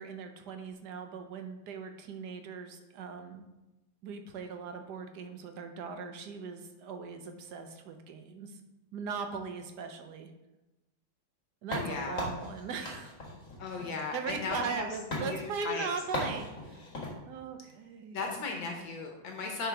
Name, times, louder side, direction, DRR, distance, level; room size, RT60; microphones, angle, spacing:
voice 1, 0.0-3.4 4.0-8.5 8.9-10.3 11.6-13.1 13.7-13.8 14.1-16.8 17.3-18.2, right 5 dB, 65° right, 6 dB, 1.2 m, -39 dB
sound 1, 11.7-14.8 15.1-15.3 16.1-17.1, left 1 dB, 40° left, 2.1 m, -38 dB
voice 2, 11.8-12.2 13.6-15.9 18.1-19.7, left 4 dB, 70° left, 2 dB, 1.7 m, -36 dB
10.0 x 4.8 x 3.5 m, 0.99 s
omnidirectional pair, 2.2 m